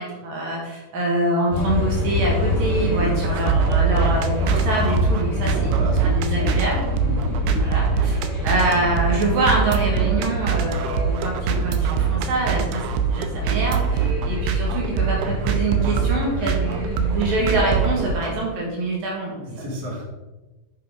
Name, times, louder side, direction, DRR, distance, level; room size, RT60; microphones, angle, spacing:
voice 1, 0.0-6.8 7.6-19.6, right 2 dB, 65° right, -2 dB, 3.1 m, -25 dB
sound 1, 1.5-18.1, left 3 dB, 30° left, 2.9 m, -26 dB
voice 2, 2.8-3.6 5.3-6.6 7.0-7.7 19.5-20.0, equal, 30° right, -4 dB, 2.0 m, -32 dB
sound 2, 3.0-18.4, right 8 dB, 85° right, 2.7 m, -24 dB
7.3 x 5.8 x 5.0 m, 1.1 s
omnidirectional pair, 4.7 m